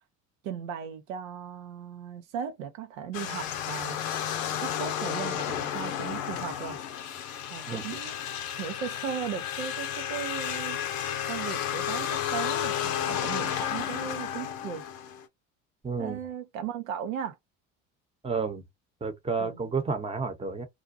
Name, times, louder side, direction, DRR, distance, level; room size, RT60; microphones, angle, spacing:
voice 1, 0.4-4.0 4.6-6.8 7.5-8.1 8.6-10.8 11.3-14.8 16.0-17.4 19.4-19.6, right 8 dB, 90° right, 0.7 m, -37 dB
sound 1, 3.1-15.2, left 9 dB, 90° left, 0.6 m, -32 dB
voice 2, 15.8-16.2 18.2-18.6 19.0-20.7, right 4 dB, 15° right, 0.8 m, -31 dB
2.5 x 2.2 x 2.6 m
hypercardioid pair, 70°, 39 cm